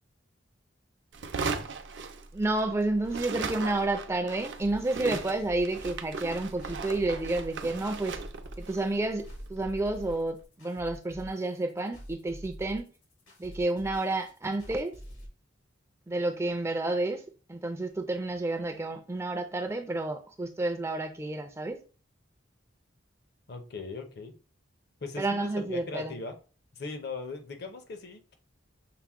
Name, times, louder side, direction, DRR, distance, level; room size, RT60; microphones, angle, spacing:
sound 1, 1.1-2.7 3.0-10.2, right 4 dB, 65° right, 0.5 m, -38 dB
voice 1, 2.3-8.1 8.6-12.9 13.4-14.9 16.1-17.2 17.5-21.8 25.2-26.1, right 2 dB, 15° right, 0.4 m, -30 dB
sound 2, 4.6-15.3, equal, 85° left, 2.0 m, -47 dB
voice 2, 23.5-24.3 25.0-26.4 26.7-28.4, left 4 dB, 55° left, 0.7 m, -39 dB
5.7 x 2.1 x 3.5 m
head